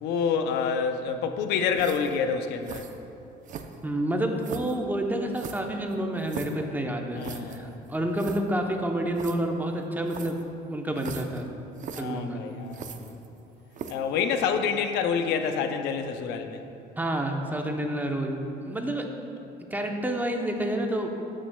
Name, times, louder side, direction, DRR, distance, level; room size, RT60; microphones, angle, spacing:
voice 1, 0.0-2.9 7.1-7.8 11.9-13.2 13.9-16.6, left 6 dB, 85° left, 7 dB, 0.5 m, -28 dB
sound 1, 1.7-2.2 2.6-3.0 3.4-3.9 4.4-4.8 5.3-6.6 7.2-7.6 7.9-8.4 9.1-9.4 10.1-10.5 11.0-11.4 11.8-12.0 12.7-13.4 13.7-14.1, right 7 dB, 50° right, 0.5 m, -39 dB
voice 2, 3.8-10.4 10.7-11.5 12.0-12.4 17.0-19.1 19.7-21.1, right 1 dB, 10° right, 3 dB, 0.7 m, -29 dB
12.5 x 6.2 x 2.2 m, 2.7 s
cardioid pair, 110°, 17 cm